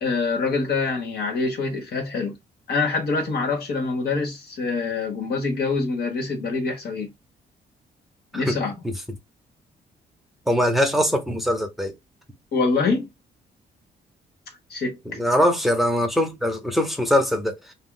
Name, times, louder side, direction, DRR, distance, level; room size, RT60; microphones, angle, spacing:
voice 1, 0.0-2.4 2.7-7.1 8.3-8.7 12.5-13.1 14.7-15.2, left 4 dB, 65° left, 1.0 m, -25 dB
voice 2, 10.5-11.9 15.1-17.7, equal, ahead, 0.7 m, -22 dB
2.3 x 2.1 x 3.7 m
cardioid pair, 105°, 17 cm